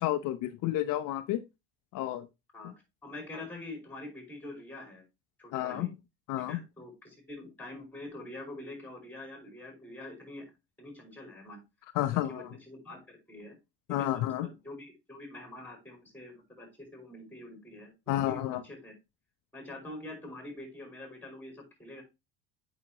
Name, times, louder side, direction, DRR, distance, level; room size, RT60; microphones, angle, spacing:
voice 1, 0.0-1.4 1.9-2.3 5.5-5.9 6.3-6.6 12.0-12.5 13.9-14.5 18.1-18.6, left 14 dB, 65° left, 9 dB, 0.7 m, -30 dB
voice 2, 3.0-5.0 5.4-5.9 6.5-10.5 10.8-11.6 12.0-13.6 13.9-18.9 19.5-22.0, left 2 dB, 5° left, 3 dB, 5.1 m, -45 dB
8.3 x 6.0 x 2.9 m, 0.23 s
cardioid pair, 125°, 34 cm